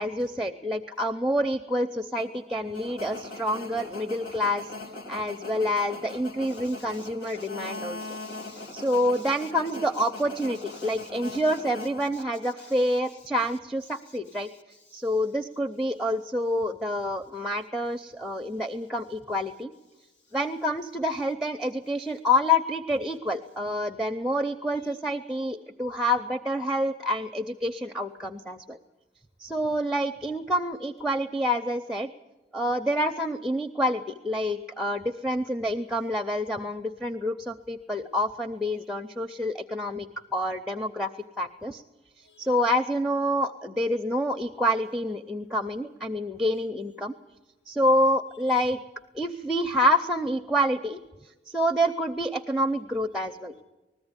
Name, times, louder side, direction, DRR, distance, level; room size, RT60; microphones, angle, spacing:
voice 1, 0.0-4.7 5.1-8.0 8.7-14.5 14.9-19.7 20.3-28.8 29.4-32.1 32.5-40.1 40.3-41.1 41.4-41.8 42.4-47.1 47.7-48.8 49.1-51.0 51.5-53.5, equal, ahead, 6 dB, 0.6 m, -27 dB
sound 1, 2.2-12.6, left 2 dB, 55° left, 1.5 m, -41 dB
voice 2, 6.5-7.5 8.0-9.0 10.7-11.4 12.6-12.8 14.4-14.5 14.9-15.0 24.8-25.0 42.2-42.5 48.5-48.6, left 3 dB, 80° left, 6 dB, 1.7 m, -52 dB
20.5 x 14.5 x 9.7 m, 1.1 s
head